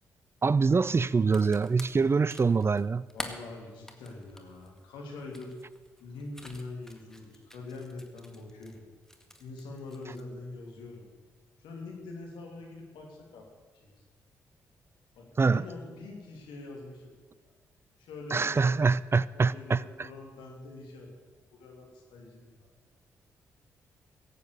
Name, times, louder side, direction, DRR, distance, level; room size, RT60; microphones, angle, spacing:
voice 1, 0.4-3.0 15.4-15.6 18.3-19.8, right 4 dB, 30° right, 0.4 m, -24 dB
sound 1, 1.2-8.8 9.0-10.2, left 1 dB, 5° left, 1.9 m, -46 dB
voice 2, 3.1-5.5 6.0-8.8 9.4-11.0 11.6-13.5 15.1-17.1 17.4-17.5 18.0-18.8 19.3-21.1 21.5-22.7, left 3 dB, 75° left, 3.1 m, -44 dB
16.0 x 8.5 x 6.6 m
hypercardioid pair, 40°, 8 cm